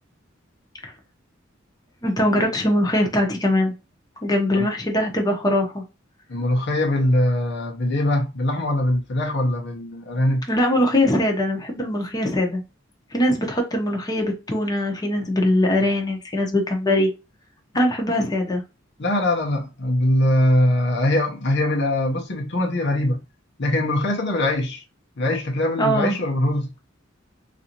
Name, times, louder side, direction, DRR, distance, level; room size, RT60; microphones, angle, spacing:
voice 1, 2.0-3.7 4.2-5.8 10.5-12.6 13.1-17.1 17.7-18.6 25.8-26.2, left 1 dB, 20° left, 0.8 m, -21 dB
voice 2, 6.3-10.5 19.0-23.2 23.6-24.8 25.2-26.7, left 1 dB, 60° left, 0.9 m, -22 dB
4.0 x 2.6 x 2.9 m
head